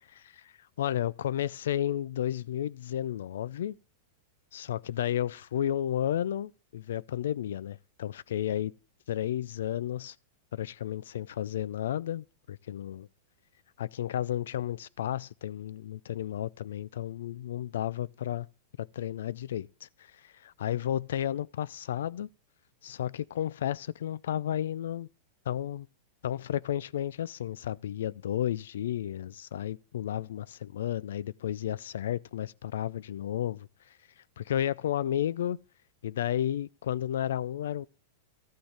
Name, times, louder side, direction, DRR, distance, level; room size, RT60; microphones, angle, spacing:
voice 1, 0.2-0.5 0.8-3.7 4.5-8.7 9.1-10.2 10.5-13.1 13.8-18.5 18.8-19.9 20.2-22.3 22.8-25.1 25.5-25.9 26.2-33.7 34.4-35.6 36.0-37.9, left 11 dB, 80° left, 0.3 m, -32 dB
13.0 x 6.2 x 3.4 m
hypercardioid pair, 125°, 0 cm